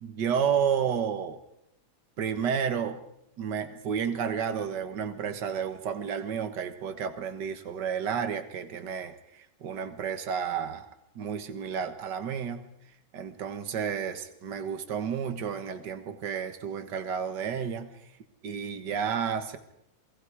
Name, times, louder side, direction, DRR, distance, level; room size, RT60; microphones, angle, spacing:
voice 1, 0.0-1.4 2.2-3.0 3.4-10.9 11.2-12.6 13.1-17.9 18.4-19.6, right 7 dB, 60° right, 9 dB, 2.0 m, -31 dB
28.5 x 19.5 x 4.9 m, 0.78 s
omnidirectional pair, 2.1 m